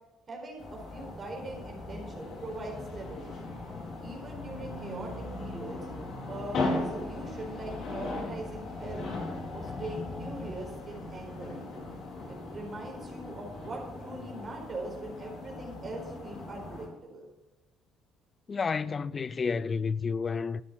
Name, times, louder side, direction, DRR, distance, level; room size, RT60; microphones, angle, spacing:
voice 1, 0.3-3.5 4.0-5.8 6.2-9.1 9.5-11.8 12.3-17.3, right 2 dB, 35° right, 4.4 m, -41 dB
sound 1, 0.6-16.9, left 2 dB, 60° left, 4.3 m, -38 dB
voice 2, 18.5-20.6, left 5 dB, 35° left, 0.5 m, -30 dB
12.5 x 10.0 x 6.0 m
cardioid pair, 100°, 0 cm